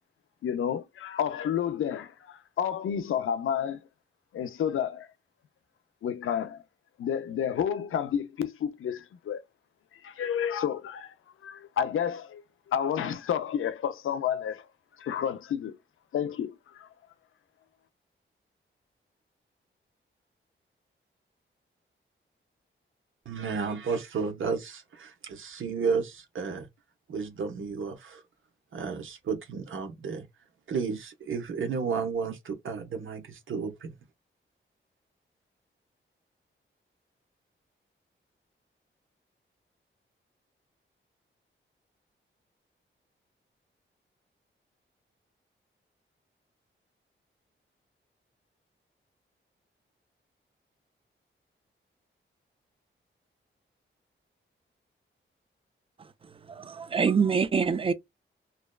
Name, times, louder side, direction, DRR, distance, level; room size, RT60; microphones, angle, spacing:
voice 1, 0.4-3.8 4.3-5.1 6.0-6.6 7.0-9.4 10.0-11.1 11.4-14.7 15.0-15.8 16.1-16.9, left 8 dB, 80° left, 0.5 m, -30 dB
voice 2, 23.3-26.7 27.1-28.2 28.7-30.3 30.7-33.9, right 5 dB, 75° right, 0.9 m, -32 dB
voice 3, 56.5-57.9, right 5 dB, 25° right, 0.4 m, -25 dB
2.7 x 2.2 x 2.2 m
wide cardioid pair, 100°, 21 cm